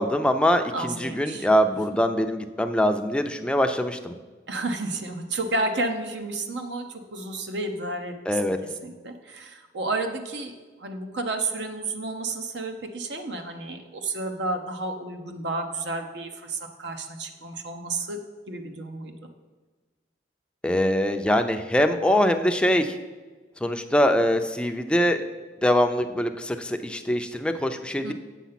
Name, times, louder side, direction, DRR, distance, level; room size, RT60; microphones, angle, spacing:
voice 1, 0.0-4.1 8.3-8.6 20.6-23.0 23.6-25.2 25.6-28.1, equal, 5° left, 6 dB, 0.5 m, -23 dB
voice 2, 0.7-1.5 4.5-8.1 8.8-18.2 18.5-19.1 28.0-28.1, right 2 dB, 70° right, 5 dB, 0.9 m, -31 dB
8.2 x 6.6 x 5.8 m, 1.3 s
head